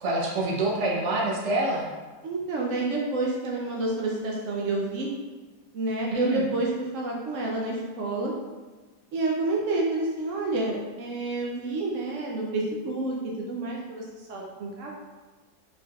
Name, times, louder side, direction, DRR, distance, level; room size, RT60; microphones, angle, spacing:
voice 1, 0.0-1.9 6.1-6.5, right 1 dB, 50° right, -3 dB, 0.9 m, -26 dB
voice 2, 2.2-5.1 5.7-8.3 9.1-14.9, right 2 dB, 75° right, -2 dB, 0.6 m, -29 dB
4.6 x 4.4 x 2.4 m, 1.3 s
omnidirectional pair, 2.1 m